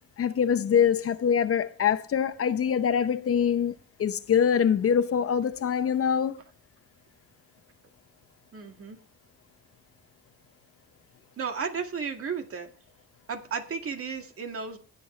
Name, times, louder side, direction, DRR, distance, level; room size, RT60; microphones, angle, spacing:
voice 1, 0.2-6.4, left 8 dB, 50° left, 0.8 m, -24 dB
voice 2, 8.5-9.0 11.4-12.7 13.3-14.8, right 5 dB, 50° right, 2.0 m, -34 dB
20.0 x 6.9 x 3.2 m
cardioid pair, 90°, 30 cm